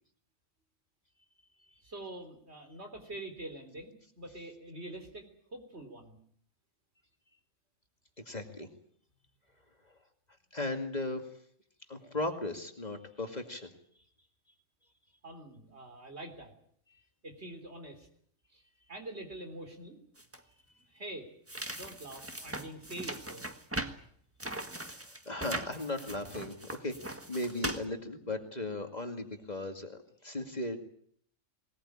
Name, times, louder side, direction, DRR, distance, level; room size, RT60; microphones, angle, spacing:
voice 1, 1.8-6.2 15.2-16.5 17.2-18.1 18.5-18.6 18.9-20.0 20.9-21.3 21.8-23.5, right 1 dB, 60° right, 6 dB, 4.0 m, -45 dB
voice 2, 8.3-8.7 9.8-10.0 10.5-11.3 11.9-13.7 24.8-30.8, left 2 dB, 35° left, 5 dB, 2.3 m, -37 dB
sound 1, 20.2-20.4 21.5-24.0 24.4-27.8, right 1 dB, 10° right, 1.5 m, -40 dB
20.5 x 20.0 x 8.8 m, 0.63 s
omnidirectional pair, 1.3 m